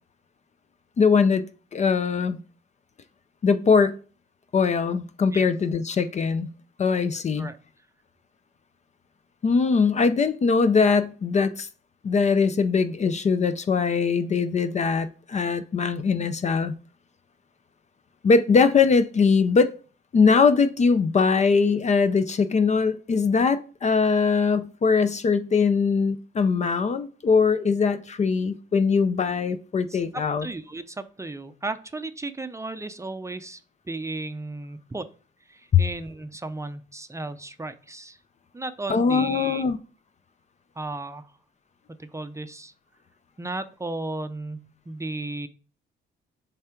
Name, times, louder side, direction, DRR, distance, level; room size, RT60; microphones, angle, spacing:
voice 1, 1.0-1.4 1.7-2.4 3.4-4.0 4.5-6.5 6.8-7.5 9.4-11.7 12.0-16.7 18.2-19.7 20.1-30.5 35.7-35.8 38.9-39.8, left 5 dB, 35° left, 0.5 m, -21 dB
voice 2, 29.9-33.6 33.9-35.1 35.5-38.2 38.5-39.6 40.8-41.3 42.0-42.7 43.4-45.5, right 2 dB, 15° right, 0.5 m, -34 dB
7.2 x 3.4 x 4.5 m
cardioid pair, 90°, 20 cm